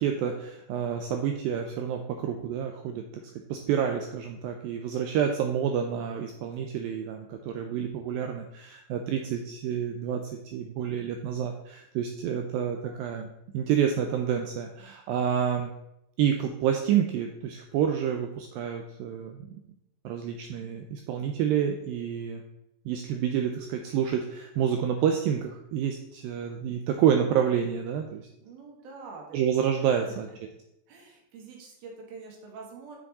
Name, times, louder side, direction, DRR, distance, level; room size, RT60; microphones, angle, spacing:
voice 1, 0.0-3.2 3.5-13.3 13.5-15.7 16.2-19.6 20.0-22.4 22.9-28.2 29.3-30.3, right 8 dB, 85° right, 4 dB, 2.0 m, -28 dB
voice 2, 28.4-29.4 30.0-30.2 30.9-33.0, right 4 dB, 70° right, 0 dB, 3.2 m, -45 dB
7.2 x 5.9 x 4.0 m, 0.82 s
omnidirectional pair, 4.7 m